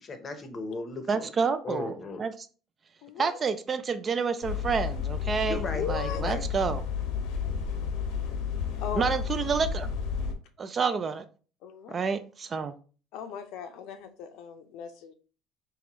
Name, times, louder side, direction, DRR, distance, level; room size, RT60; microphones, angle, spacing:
voice 1, 0.0-1.3 1.6-2.2 5.4-5.8 6.2-6.4, left 3 dB, 25° left, 7 dB, 0.7 m, -36 dB
voice 2, 1.1-2.5 3.2-6.8 9.0-9.9 10.6-11.2 11.9-12.7, right 5 dB, 25° right, 10 dB, 0.3 m, -29 dB
voice 3, 3.0-3.4 5.7-6.2 8.8-9.2 11.6-12.0 13.1-15.1, left 7 dB, 65° left, 8 dB, 0.6 m, -38 dB
sound 1, 4.4-10.3, left 6 dB, 80° left, 0.9 m, -31 dB
4.7 x 3.1 x 2.9 m, 0.37 s
cardioid pair, 155°, 0 cm